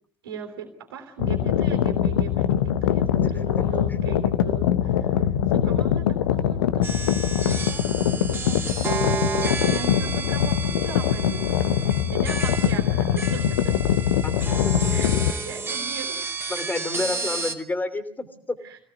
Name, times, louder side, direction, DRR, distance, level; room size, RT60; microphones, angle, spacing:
voice 1, 0.2-11.4 11.8-13.8 14.9-15.1 15.4-16.4 18.6-18.8, right 7 dB, 70° right, 3 dB, 3.3 m, -39 dB
sound 1, 1.2-15.3, left 10 dB, 65° left, 1.2 m, -23 dB
voice 2, 3.2-3.6 3.9-4.0 13.3-13.4 14.2-14.9 16.5-18.6, left 2 dB, 15° left, 11 dB, 3.1 m, -30 dB
sound 2, 6.8-17.5, right 4 dB, 20° right, 2.5 m, -32 dB
25.5 x 17.5 x 8.2 m, 0.64 s
figure-of-eight pair, 65°, 13 cm